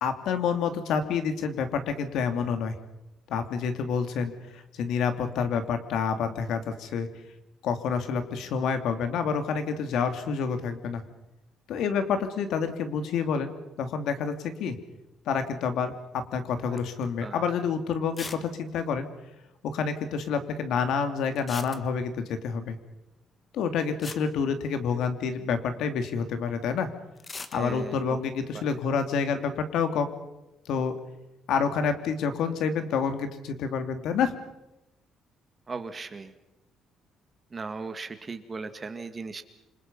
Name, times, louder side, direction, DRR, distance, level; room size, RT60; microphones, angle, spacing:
voice 1, 0.0-2.7 3.3-7.1 7.6-11.0 11.7-14.7 15.3-19.1 19.6-22.8 23.5-26.9 27.5-30.1 30.6-31.0 31.5-34.3, left 6 dB, 70° left, 8 dB, 2.8 m, -28 dB
sound 1, 16.8-17.1 17.4-17.5 18.1-18.5 18.7-18.8 19.0-19.1 21.4-22.2 23.6-23.7 24.0-25.2 27.2-27.6, left 3 dB, 20° left, 1.3 m, -40 dB
voice 2, 27.5-28.2 28.5-28.7 35.7-36.3 37.5-39.5, right 4 dB, 25° right, 8 dB, 1.9 m, -37 dB
28.5 x 25.5 x 5.6 m, 0.95 s
cardioid pair, 155°, 0 cm